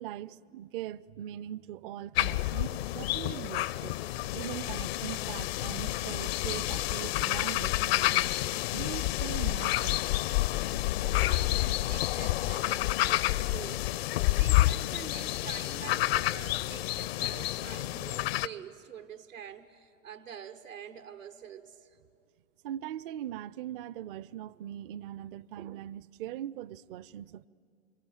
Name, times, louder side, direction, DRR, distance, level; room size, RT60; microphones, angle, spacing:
voice 1, 0.0-4.0 4.3-8.3 8.7-10.0 22.6-27.5, right 12 dB, 45° right, 0.6 m, -41 dB
sound 1, 2.2-18.5, left 17 dB, 50° left, 0.6 m, -29 dB
voice 2, 11.0-22.0, right 8 dB, 80° right, 1.2 m, -46 dB
26.5 x 24.0 x 9.1 m
figure-of-eight pair, 90°, 39 cm